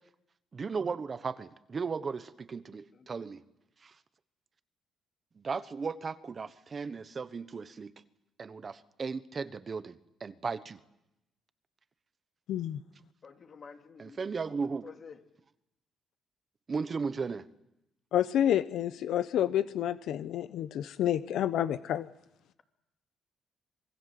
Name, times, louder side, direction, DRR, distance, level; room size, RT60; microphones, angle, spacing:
voice 1, 0.5-3.4 3.8-3.9 5.4-7.9 8.4-10.8 14.0-14.9 16.7-17.4, right 5 dB, 40° right, 13 dB, 1.2 m, -36 dB
voice 2, 12.5-12.8 18.1-22.1, left 11 dB, 80° left, 13 dB, 0.9 m, -29 dB
voice 3, 13.2-14.2 14.8-15.2, left 5 dB, 50° left, 5 dB, 2.9 m, -50 dB
26.5 x 21.0 x 7.8 m, 0.89 s
cardioid pair, 90°, 0 cm